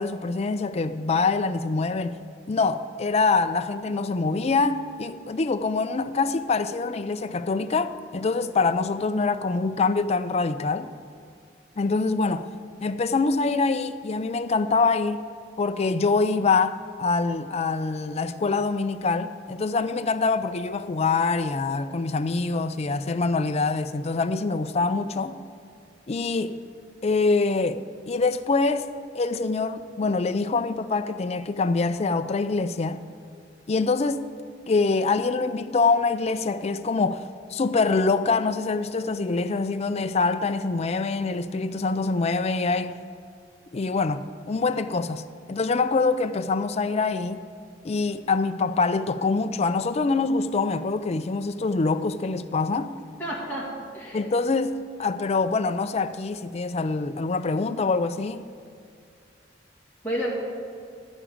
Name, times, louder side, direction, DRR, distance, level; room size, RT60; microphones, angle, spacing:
voice 1, 0.0-2.2 2.5-10.9 11.8-12.5 12.8-15.2 15.6-25.4 26.1-26.6 27.0-28.9 29.1-33.0 33.7-34.3 34.7-43.0 43.7-45.2 45.5-47.5 47.8-52.9 54.1-54.7 55.0-58.5, left 4 dB, 35° left, 0.4 m, -25 dB
voice 2, 53.2-54.2 60.0-60.3, equal, 10° left, 2.2 m, -30 dB
13.5 x 5.0 x 8.6 m
head